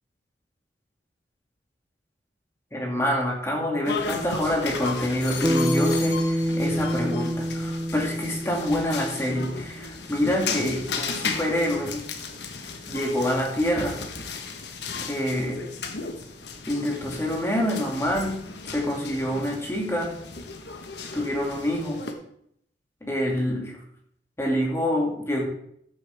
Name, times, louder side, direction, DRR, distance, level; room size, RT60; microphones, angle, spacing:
voice 1, 2.7-12.1 12.9-14.0 15.0-15.6 16.7-18.4 18.7-20.2 21.1-22.0 23.0-23.7 24.4-25.4, equal, 15° left, -1 dB, 2.5 m, -26 dB
sound 1, 3.8-22.1, left 4 dB, 70° left, 1.3 m, -35 dB
Bass guitar, 5.4-9.9, equal, 10° right, 0.4 m, -27 dB
13.5 x 7.8 x 3.6 m, 0.70 s
head